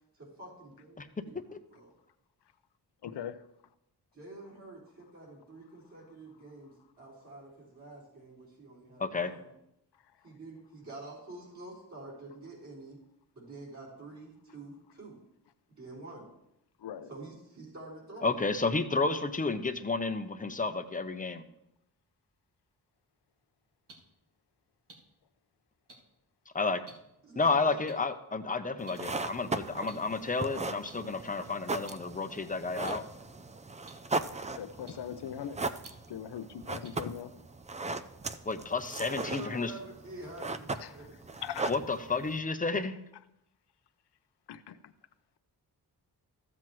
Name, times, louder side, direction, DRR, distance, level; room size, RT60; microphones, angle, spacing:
voice 1, 0.1-1.9 4.1-9.5 10.2-13.0 13.3-15.2 15.8-16.3 17.1-18.6 27.2-27.8 39.1-41.4, right 2 dB, 45° right, 4.1 m, -48 dB
voice 2, 3.0-3.4 16.8-17.1 34.6-35.6 36.1-37.3 40.8-41.0 41.4-41.7 42.7-42.9 44.5-44.8, left 9 dB, 80° left, 0.7 m, -40 dB
voice 3, 9.0-9.3 18.2-21.4 26.5-26.8 27.4-33.0 38.5-39.7 41.7-42.9, left 3 dB, 20° left, 0.6 m, -31 dB
sound 1, 23.9-24.0 24.9-25.0 25.9-26.0 26.9-27.0 27.9-28.0 28.9-29.0 29.9-30.0 30.8-30.9 31.9-32.0 32.9-33.0 33.9-34.0 34.9-35.0 35.8-35.9 36.8-36.9, right 3 dB, 90° right, 2.0 m, -50 dB
sound 2, 28.8-42.4, right 3 dB, 20° right, 0.3 m, -38 dB
14.0 x 7.6 x 3.1 m
wide cardioid pair, 125°, 40 cm